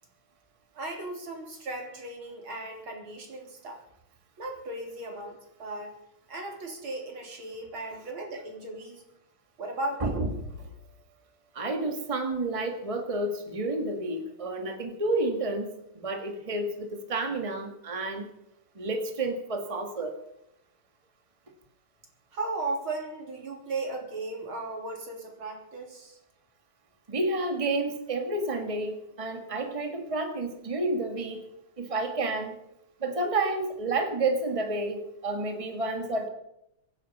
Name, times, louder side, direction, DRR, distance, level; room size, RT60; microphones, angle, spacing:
voice 1, 0.7-3.8 4.4-6.0 6.3-9.0 9.6-10.3 22.3-26.2, right 2 dB, 75° right, 2 dB, 4.2 m, -36 dB
voice 2, 10.0-10.3 11.5-18.3 18.7-20.1 27.1-31.4 31.8-32.6 33.0-36.3, right 2 dB, 15° right, 5 dB, 1.8 m, -30 dB
24.5 x 10.5 x 5.6 m, 0.81 s
omnidirectional pair, 2.3 m